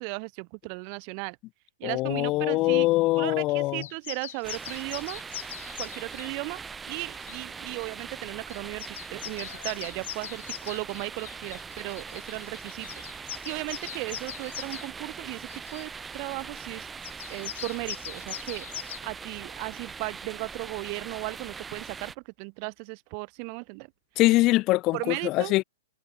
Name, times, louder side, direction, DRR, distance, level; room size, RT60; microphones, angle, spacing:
voice 1, 0.0-1.4 1.8-2.9 3.1-5.2 5.8-6.6 6.9-12.9 13.1-16.9 17.3-23.9 24.9-25.5, right 40 dB or more, 25° right, 7.3 m, -36 dB
voice 2, 1.8-3.9 24.2-25.6, left 19 dB, 20° left, 1.1 m, -23 dB
sound 1, 3.8-6.3 7.1-7.4 8.2-8.3 8.5-14.9 15.5-15.9 17.0-19.0, left 12 dB, 40° left, 5.9 m, -41 dB
sound 2, 4.4-22.2, right 5 dB, 5° right, 1.6 m, -41 dB
hypercardioid pair, 180°, 0 cm